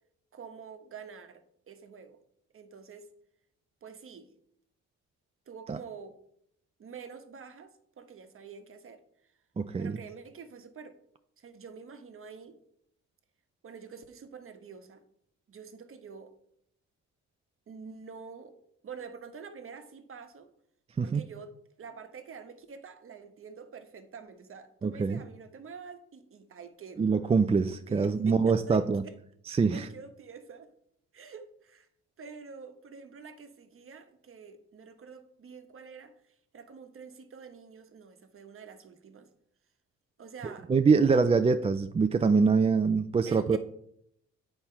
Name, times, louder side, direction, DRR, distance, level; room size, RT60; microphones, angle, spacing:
voice 1, 0.3-2.2 2.5-3.1 3.8-4.3 5.5-6.2 6.8-9.0 9.8-11.0 11.4-12.6 13.6-15.0 15.5-16.3 17.7-18.6 18.8-20.5 21.0-27.1 27.9-29.1 29.7-30.7 31.1-31.9 32.2-39.3 40.2-40.7 43.3-43.6, right 5 dB, 45° right, 8 dB, 1.1 m, -47 dB
voice 2, 9.6-10.0 21.0-21.2 24.8-25.2 27.0-29.0 29.5-29.9 40.7-43.6, right 5 dB, 20° right, 9 dB, 0.4 m, -24 dB
8.9 x 4.4 x 5.6 m, 0.72 s
cardioid pair, 90°, 30 cm